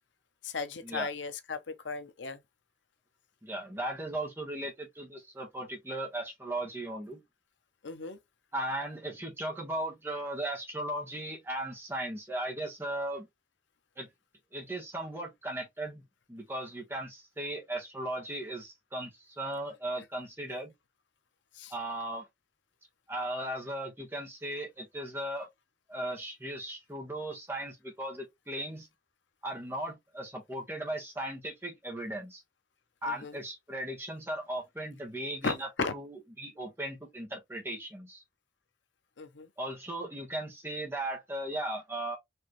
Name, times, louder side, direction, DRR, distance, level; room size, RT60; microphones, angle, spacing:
voice 1, 0.4-2.4 7.8-8.2 21.6-21.7 33.1-33.4 35.4-35.9 39.2-39.5, left 4 dB, 85° left, 0.8 m, -36 dB
voice 2, 3.4-7.2 8.5-13.3 14.0-14.1 14.5-16.0 16.3-20.7 21.7-22.3 23.1-25.5 25.9-28.9 29.4-32.4 33.0-38.2 39.6-42.2, right 1 dB, 15° right, 1.3 m, -37 dB
4.6 x 3.1 x 3.1 m
head